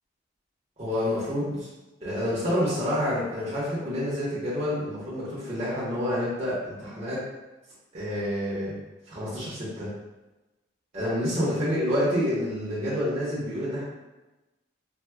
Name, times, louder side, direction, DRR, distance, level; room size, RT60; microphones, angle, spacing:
voice 1, 0.8-1.7 2.0-7.2 7.9-8.8 9.1-9.9 10.9-13.8, equal, 35° right, -10 dB, 0.8 m, -28 dB
4.4 x 2.1 x 2.2 m, 1.1 s
head